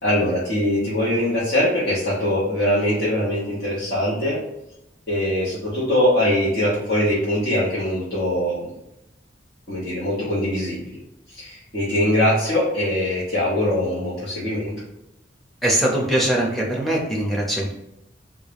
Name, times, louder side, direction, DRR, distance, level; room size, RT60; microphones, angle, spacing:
voice 1, 0.0-4.4 5.1-8.7 9.7-10.9 11.3-14.7, left 1 dB, 55° left, -9 dB, 1.1 m, -22 dB
voice 2, 15.6-17.7, right 1 dB, ahead, -2 dB, 0.7 m, -21 dB
3.6 x 2.4 x 3.3 m, 0.86 s
head